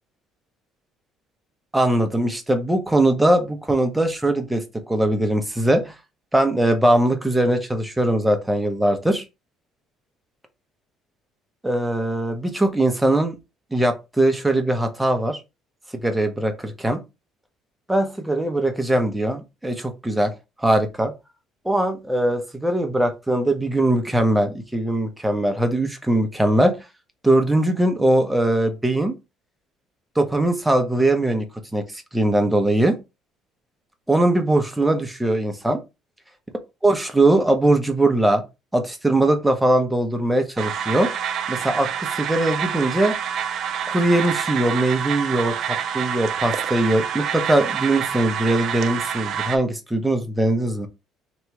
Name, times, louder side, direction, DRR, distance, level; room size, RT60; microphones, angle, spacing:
voice 1, 1.7-5.9 6.3-9.2 11.6-13.4 13.7-15.4 16.0-17.0 17.9-20.3 20.6-21.1 21.6-26.7 27.2-29.1 30.2-31.4 31.7-33.0 34.1-35.8 36.8-38.4 38.7-41.1 41.5-43.1 43.9-50.9, right 1 dB, 5° right, 5 dB, 0.7 m, -21 dB
sound 1, 40.6-49.6, right 8 dB, 50° right, 0.5 m, -27 dB
3.0 x 2.9 x 4.6 m, 0.25 s
cardioid pair, 145°, 0 cm